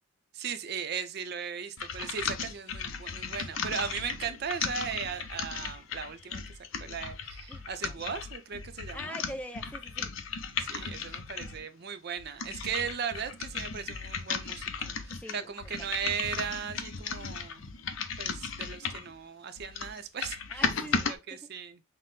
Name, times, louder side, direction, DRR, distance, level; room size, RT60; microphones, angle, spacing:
voice 1, 0.3-6.4 6.8-9.2 10.6-17.6 18.2-20.6 21.1-21.8, right 7 dB, 50° right, 0.5 m, -37 dB
sound 1, 1.8-11.6 12.2-19.1 19.6-21.1, left 5 dB, 75° left, 0.6 m, -36 dB
voice 2, 7.5-8.0 8.9-10.1 15.1-15.5 15.8-16.0 20.5-21.4, equal, 5° left, 0.3 m, -43 dB
5.8 x 2.0 x 3.2 m
head